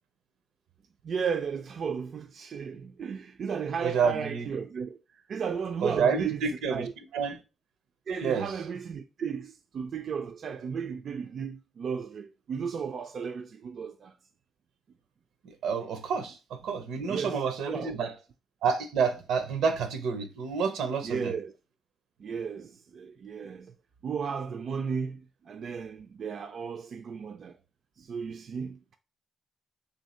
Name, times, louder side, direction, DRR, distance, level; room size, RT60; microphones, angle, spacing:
voice 1, 1.0-6.9 8.1-14.1 17.1-18.0 21.0-21.5 22.2-23.7 24.0-27.6 28.0-28.8, right 6 dB, 50° right, 0.3 m, -34 dB
voice 2, 3.8-4.5 5.8-6.8 7.1-7.4 8.2-8.5 15.6-18.1 18.6-21.3, right 6 dB, 85° right, 0.6 m, -29 dB
3.5 x 2.7 x 4.2 m
cardioid pair, 120°, 0 cm